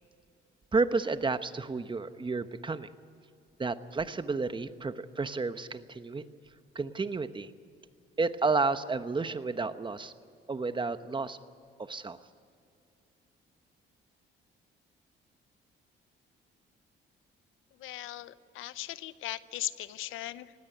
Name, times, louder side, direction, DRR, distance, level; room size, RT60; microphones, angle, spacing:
voice 1, 0.7-2.9 3.6-6.2 6.7-7.5 8.2-10.1 10.5-11.4 11.9-12.2, right 4 dB, 25° right, 11 dB, 1.0 m, -31 dB
voice 2, 17.8-20.5, left 15 dB, 85° left, 16 dB, 0.7 m, -38 dB
19.5 x 16.0 x 9.9 m, 2.5 s
cardioid pair, 90°, 20 cm